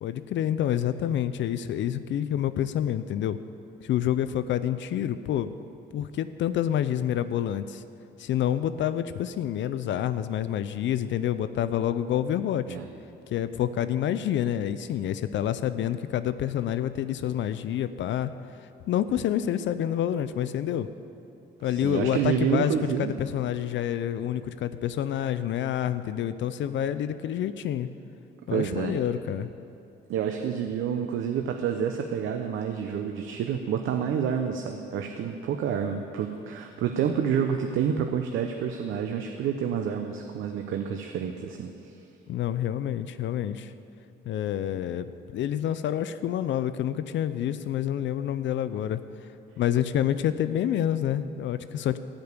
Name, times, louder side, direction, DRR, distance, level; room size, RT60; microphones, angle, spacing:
voice 1, 0.0-3.4 3.8-5.5 5.9-7.8 8.2-12.8 13.3-18.3 18.9-20.9 21.6-27.9 28.5-29.5 42.3-43.7 44.2-49.0 49.6-52.0, left 10 dB, 70° left, 12 dB, 0.5 m, -28 dB
voice 2, 21.6-23.1 28.5-29.0 30.1-41.9, right 8 dB, 80° right, 5 dB, 0.8 m, -28 dB
15.5 x 5.2 x 9.6 m, 2.6 s
cardioid pair, 90°, 20 cm